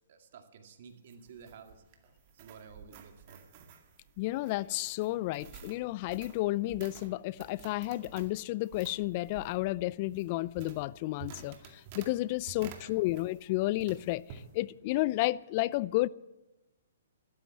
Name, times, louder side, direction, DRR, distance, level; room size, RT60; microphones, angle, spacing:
voice 1, 0.1-1.8 2.3-3.4 12.5-13.1, right 6 dB, 55° right, 2.2 m, -53 dB
sound 1, 0.9-13.5 13.8-14.5, right 7 dB, 40° right, 2.1 m, -51 dB
voice 2, 4.2-16.1, left 18 dB, 40° left, 0.4 m, -32 dB
14.0 x 13.0 x 7.6 m
hypercardioid pair, 135°, 0 cm